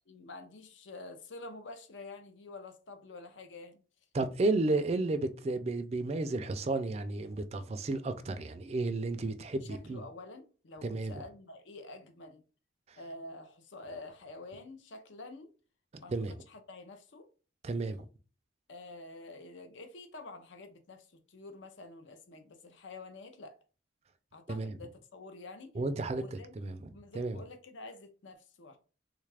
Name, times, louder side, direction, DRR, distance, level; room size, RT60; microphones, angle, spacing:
voice 1, 0.1-3.8 9.6-12.4 13.0-15.5 16.0-17.3 18.7-23.6 24.3-25.7 26.1-26.5 26.9-28.8, left 2 dB, 70° left, 0.6 m, -48 dB
voice 2, 4.1-10.0 10.8-11.1 16.1-16.3 17.6-18.1 24.5-24.7 25.8-26.2 26.6-26.9 27.1-27.4, right 2 dB, 30° right, 0.3 m, -32 dB
3.5 x 2.4 x 3.2 m
head